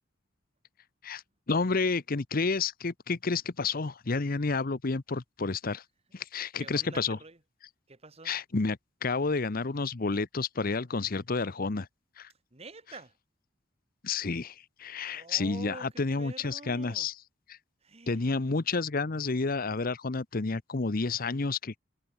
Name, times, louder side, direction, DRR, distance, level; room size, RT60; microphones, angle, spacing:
voice 1, 1.5-5.8 6.1-7.2 8.2-11.9 12.2-12.3 14.0-17.1 17.5-17.6 18.1-21.8, left 4 dB, 45° left, 0.8 m, -30 dB
voice 2, 6.6-7.4 7.9-8.3 12.5-13.1 15.0-17.1 17.8-18.3, right 3 dB, 30° right, 1.9 m, -47 dB
head